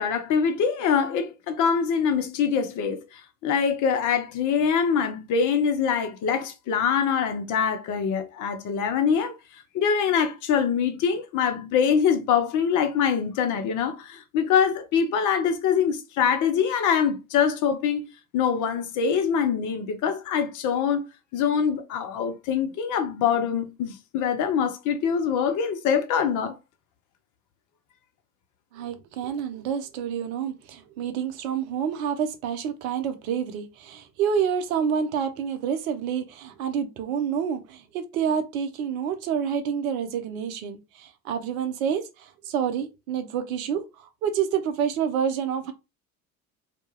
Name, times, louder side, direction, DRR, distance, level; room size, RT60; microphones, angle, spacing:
voice 1, 0.0-9.4 9.7-26.6, left 7 dB, 45° left, 0.7 m, -24 dB
voice 2, 28.7-45.7, right 7 dB, 70° right, 0.7 m, -28 dB
2.3 x 2.3 x 3.1 m
hypercardioid pair, 70°, 44 cm